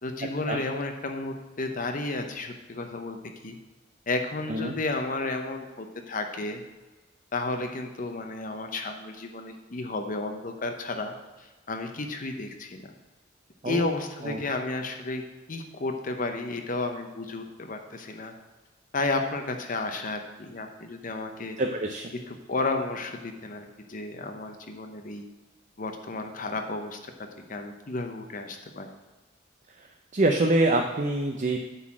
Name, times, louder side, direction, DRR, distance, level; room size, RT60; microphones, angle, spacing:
voice 1, 0.0-3.2 3.4-3.6 4.1-6.6 7.3-11.1 11.4-12.9 13.6-15.2 15.5-18.3 18.9-21.6 22.3-25.3 25.8-27.1 27.5-28.9, left 2 dB, 45° left, 5 dB, 0.8 m, -32 dB
voice 2, 21.6-22.1 30.1-31.6, right 2 dB, 40° right, 3 dB, 0.6 m, -25 dB
9.8 x 4.1 x 7.4 m, 1.2 s
head